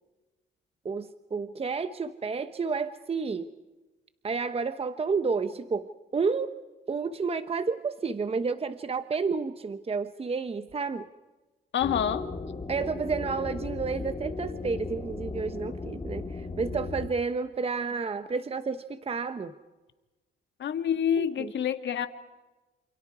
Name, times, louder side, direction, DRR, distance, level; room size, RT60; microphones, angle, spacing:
voice 1, 0.8-3.5 4.2-6.5 6.9-11.1 12.7-19.5 21.2-21.5, right 4 dB, 30° right, 10 dB, 1.0 m, -31 dB
voice 2, 11.7-12.3 20.6-22.1, left 9 dB, 65° left, 8 dB, 2.0 m, -27 dB
sound 1, 11.8-17.1, left 3 dB, 25° left, 2.5 m, -36 dB
28.0 x 28.0 x 4.9 m, 1.2 s
cardioid pair, 90°, 20 cm